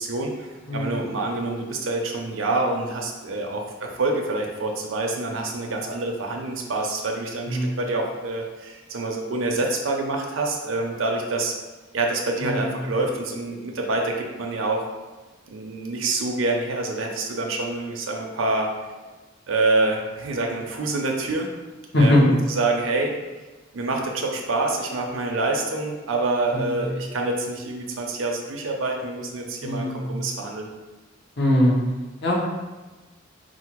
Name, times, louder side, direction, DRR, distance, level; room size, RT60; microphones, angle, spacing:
voice 1, 0.0-11.5 11.9-14.9 15.5-18.7 19.5-21.5 22.0-23.2 23.7-30.7, right 2 dB, 80° right, 1 dB, 0.6 m, -26 dB
voice 2, 0.7-1.0 7.5-7.8 12.4-12.8 21.9-22.2 26.5-26.9 29.6-30.1 31.4-31.8 32.2-32.4, left 1 dB, 60° left, -4 dB, 1.0 m, -21 dB
4.5 x 2.1 x 4.5 m, 1.2 s
head